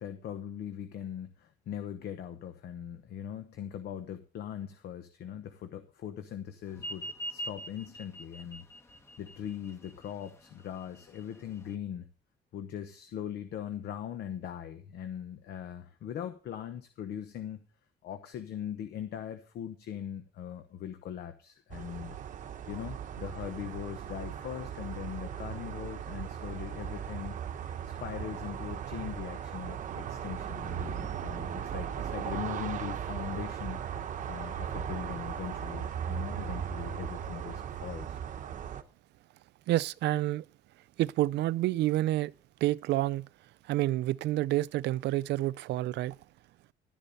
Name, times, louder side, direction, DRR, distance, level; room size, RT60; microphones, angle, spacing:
voice 1, 0.0-8.7 9.2-12.1 12.5-17.6 18.0-22.2 22.7-27.3 27.8-33.8 34.3-38.2, left 9 dB, 75° left, 1.0 m, -40 dB
sound 1, 6.7-11.8, right 1 dB, 15° left, 1.3 m, -43 dB
sound 2, 21.7-38.8, right 9 dB, 50° right, 0.9 m, -37 dB
voice 2, 39.7-40.4 41.0-42.3 42.6-43.3 43.7-46.1, right 16 dB, 90° right, 0.4 m, -28 dB
12.0 x 10.0 x 4.1 m
cardioid pair, 165°, 17 cm